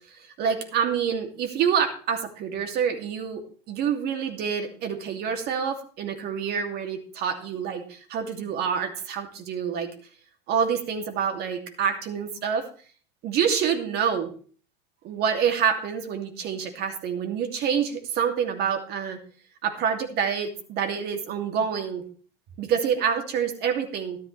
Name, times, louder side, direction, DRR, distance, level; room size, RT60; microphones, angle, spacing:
voice 1, 0.4-3.4 3.7-9.9 10.5-12.6 13.2-14.3 15.0-19.2 19.6-22.0 22.6-24.2, right 7 dB, 50° right, 4 dB, 2.7 m, -27 dB
13.5 x 12.0 x 3.3 m, 0.42 s
supercardioid pair, 125°, 21 cm